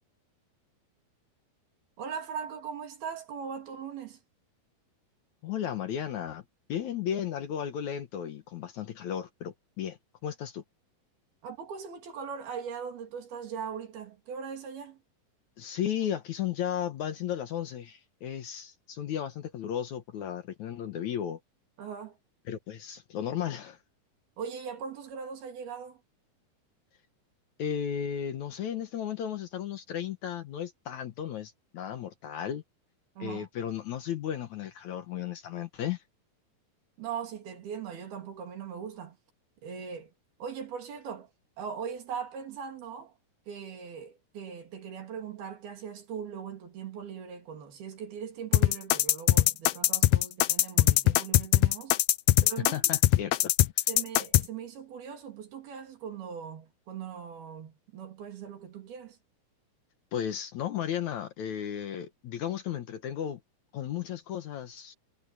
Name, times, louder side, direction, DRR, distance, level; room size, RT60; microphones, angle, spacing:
voice 1, 2.0-4.2 11.4-15.0 21.8-22.2 24.4-26.0 33.2-33.5 37.0-39.2 39.6-40.1 40.4-41.3 41.6-43.1 43.5-52.0 52.4-52.7 53.9-59.2, right 7 dB, 80° right, 5.1 m, -40 dB
voice 2, 5.4-6.4 6.7-10.6 15.6-21.4 22.5-23.8 27.6-32.6 33.2-36.0 52.7-53.9 60.1-63.4 63.7-64.9, left 9 dB, 65° left, 2.1 m, -34 dB
sound 1, 48.5-54.4, left 16 dB, 85° left, 1.6 m, -21 dB
omnidirectional pair, 4.3 m